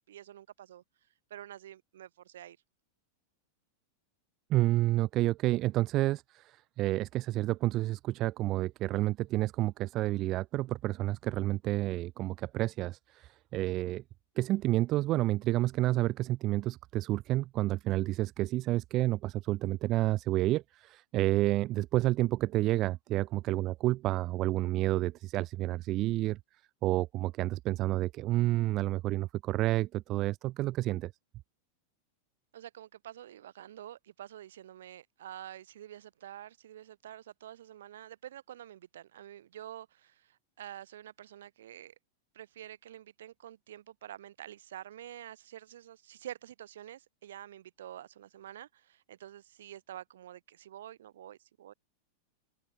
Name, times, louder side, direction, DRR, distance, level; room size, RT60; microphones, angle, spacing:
voice 1, 0.1-0.8 1.3-2.6 32.5-41.9 42.3-51.7, right 11 dB, 60° right, 3.8 m, -48 dB
voice 2, 4.5-14.0 14.4-26.4 26.8-31.1, right 16 dB, 35° right, 0.3 m, -30 dB
open air
figure-of-eight pair, 90°, 0 cm